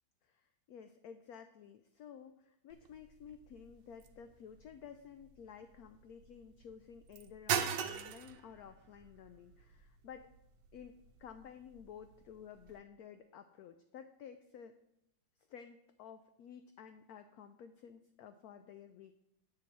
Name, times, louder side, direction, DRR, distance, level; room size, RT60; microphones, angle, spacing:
voice 1, 0.2-10.3 10.7-14.8 15.5-19.2, left 7 dB, 85° left, 9 dB, 0.8 m, -53 dB
sound 1, 2.7-12.8, right 8 dB, 70° right, 1.2 m, -43 dB
9.8 x 3.9 x 7.2 m, 0.81 s
omnidirectional pair, 2.1 m